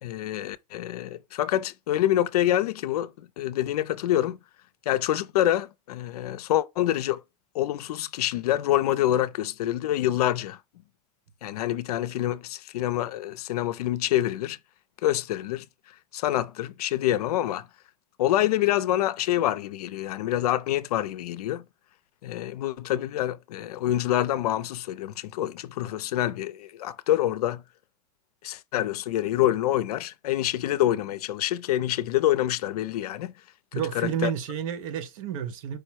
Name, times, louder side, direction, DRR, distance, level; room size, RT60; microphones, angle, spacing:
voice 1, 0.0-4.4 4.9-7.2 7.5-10.6 11.4-14.6 15.0-15.7 16.1-17.7 18.2-21.6 22.2-27.6 28.4-33.3 33.9-34.3, left 13 dB, 75° left, 0.5 m, -26 dB
voice 2, 33.7-35.8, right 8 dB, 55° right, 0.9 m, -30 dB
4.8 x 2.2 x 4.5 m
supercardioid pair, 145°, 20 cm